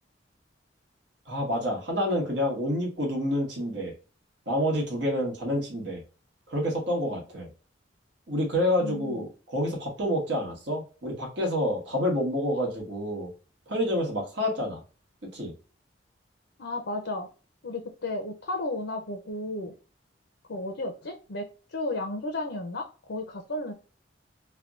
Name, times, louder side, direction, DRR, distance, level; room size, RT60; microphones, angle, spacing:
voice 1, 1.3-3.9 4.5-6.0 6.5-7.5 8.3-13.3 13.7-14.8 15.3-15.5, equal, 70° right, 0 dB, 1.3 m, -28 dB
voice 2, 8.8-9.2 16.6-17.3 17.6-19.7 20.5-23.7, left 2 dB, 75° left, 3 dB, 0.6 m, -33 dB
3.3 x 2.2 x 2.4 m, 0.35 s
head